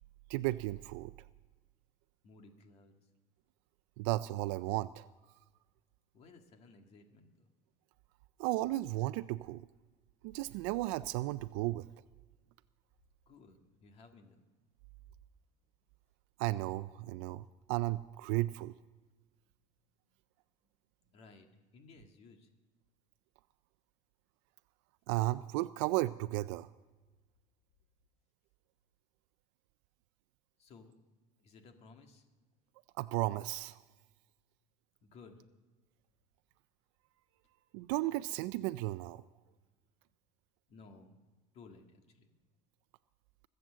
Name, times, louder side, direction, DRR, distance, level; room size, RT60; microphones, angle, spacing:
voice 1, 0.3-1.1 4.0-5.1 8.4-9.6 10.2-11.9 16.4-18.7 25.1-26.7 33.0-33.8 37.7-39.2, right 18 dB, 85° right, 13 dB, 0.4 m, -34 dB
voice 2, 2.2-2.9 6.1-7.3 13.3-14.4 21.0-22.5 30.6-31.0 31.4-32.2 35.0-35.4 40.7-41.2 41.5-42.3, left 3 dB, 45° left, 5 dB, 2.0 m, -57 dB
23.5 x 7.8 x 7.5 m, 1.3 s
cardioid pair, 150°, 15 cm